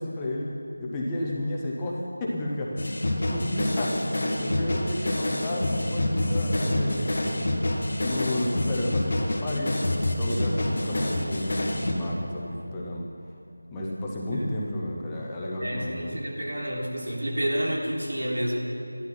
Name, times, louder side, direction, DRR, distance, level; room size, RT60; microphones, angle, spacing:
voice 1, 0.0-2.8 3.2-4.1 4.4-7.5 8.0-13.1 13.7-16.2, left 1 dB, 5° left, -4 dB, 0.6 m, -32 dB
sound 1, 2.8-11.9, left 1 dB, 35° left, 1.9 m, -27 dB
voice 2, 15.6-18.5, equal, 85° right, -3 dB, 4.0 m, -29 dB
13.5 x 12.0 x 5.9 m, 2.8 s
figure-of-eight pair, 180°, 0 cm